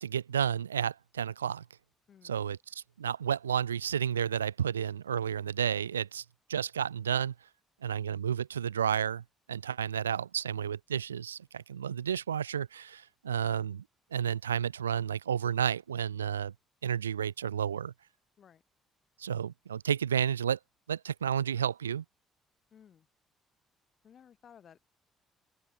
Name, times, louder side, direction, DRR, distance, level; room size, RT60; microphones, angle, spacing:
voice 1, 0.0-1.6 2.2-2.6 3.0-6.2 6.5-7.3 7.8-9.2 9.5-13.8 14.1-16.5 16.8-17.9 19.2-20.6 20.9-22.0, right 8 dB, 85° right, 0.4 m, -31 dB
voice 2, 2.1-2.4 18.4-18.6 22.7-23.1 24.0-24.8, left 8 dB, 50° left, 6.1 m, -57 dB
open air
figure-of-eight pair, 45°, 0 cm